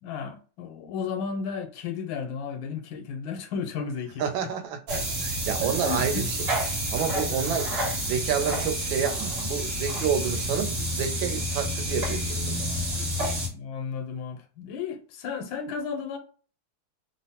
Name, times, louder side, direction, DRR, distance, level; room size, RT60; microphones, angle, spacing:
voice 1, 0.0-4.5 5.5-6.3 7.3-7.6 13.4-16.2, left 6 dB, 90° left, 1.4 m, -34 dB
voice 2, 4.2-6.4 6.9-13.0, right 7 dB, 85° right, 1.4 m, -30 dB
sound 1, 4.9-13.5, right 1 dB, 45° right, 0.9 m, -29 dB
3.4 x 2.0 x 2.8 m
omnidirectional pair, 2.1 m